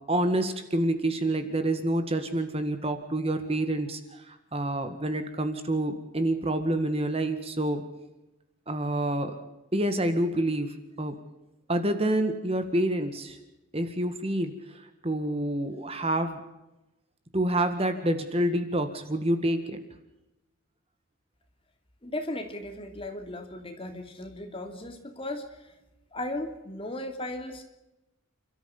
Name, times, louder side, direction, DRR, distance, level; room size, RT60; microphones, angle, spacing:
voice 1, 0.1-7.8 8.7-9.4 9.7-11.2 11.7-13.4 13.7-16.4 17.3-19.8, right 1 dB, 30° right, 8 dB, 1.9 m, -28 dB
voice 2, 22.0-25.7 26.1-27.6, left 1 dB, 25° left, 5 dB, 2.7 m, -36 dB
30.0 x 13.0 x 7.2 m, 0.95 s
head